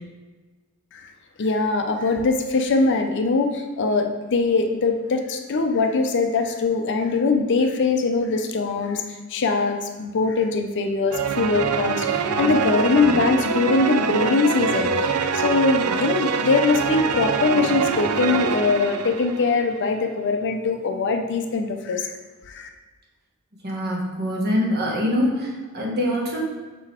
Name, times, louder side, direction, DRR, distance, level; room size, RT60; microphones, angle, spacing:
voice 1, 1.4-22.1 22.5-22.7, left 3 dB, 55° left, 5 dB, 0.5 m, -22 dB
sound 1, 11.1-19.7, right 5 dB, 75° right, 0.4 m, -24 dB
voice 2, 23.6-26.4, equal, 45° right, -3 dB, 1.4 m, -24 dB
5.8 x 3.9 x 4.3 m, 1.3 s
head